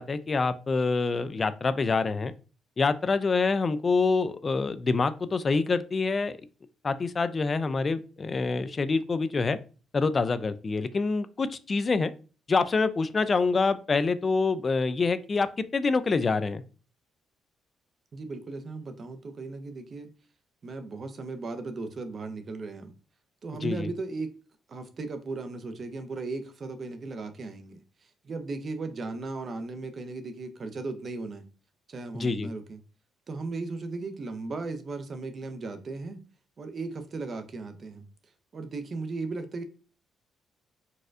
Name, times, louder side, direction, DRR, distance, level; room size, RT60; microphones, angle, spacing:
voice 1, 0.0-2.3 2.8-6.4 6.8-9.6 9.9-12.1 12.5-16.6 23.6-23.9 32.1-32.5, left 4 dB, 35° left, 0.3 m, -26 dB
voice 2, 18.1-20.1 20.6-22.9 23.4-24.3 24.7-31.4 31.9-32.8 33.3-36.2 36.6-38.1 38.5-39.6, right 3 dB, 45° right, 0.6 m, -36 dB
4.1 x 2.3 x 2.5 m
cardioid pair, 90°, 0 cm